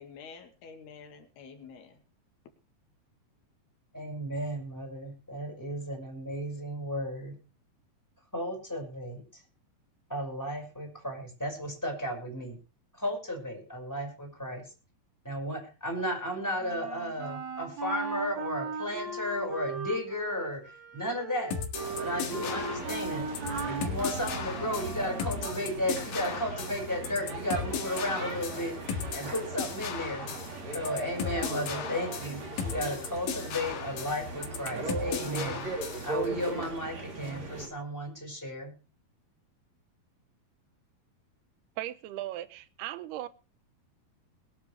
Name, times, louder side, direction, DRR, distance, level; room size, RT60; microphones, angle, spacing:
voice 1, 0.0-2.0, left 6 dB, 85° left, 4.2 m, -48 dB
voice 2, 3.9-7.4 8.3-9.4 10.1-12.6 12.9-14.7 15.2-21.5 22.0-23.3 23.6-28.8 29.1-30.3 30.7-35.7 36.0-38.8, equal, 5° left, 5.8 m, -34 dB
Wind instrument woodwind instrument, 16.6-25.5, right 4 dB, 65° right, 7.6 m, -38 dB
sound 1, 21.5-36.1, left 7 dB, 65° left, 3.2 m, -37 dB
sound 2, 21.7-37.7, right 3 dB, 45° right, 4.7 m, -38 dB
voice 3, 41.8-43.3, right 14 dB, 90° right, 2.9 m, -37 dB
22.0 x 10.0 x 3.4 m
omnidirectional pair, 4.4 m